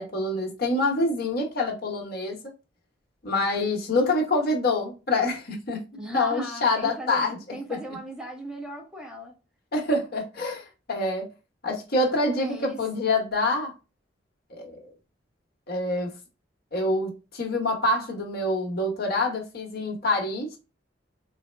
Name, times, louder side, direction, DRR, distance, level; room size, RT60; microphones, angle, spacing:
voice 1, 0.0-2.4 3.2-5.8 6.1-7.4 7.7-7.8 9.7-11.3 11.6-13.7 14.5-14.8 15.7-16.1 16.7-20.6, left 2 dB, 55° left, 1.0 m, -26 dB
voice 2, 5.9-9.3 12.3-12.8, right 1 dB, 5° right, 0.8 m, -38 dB
4.1 x 2.0 x 3.2 m
head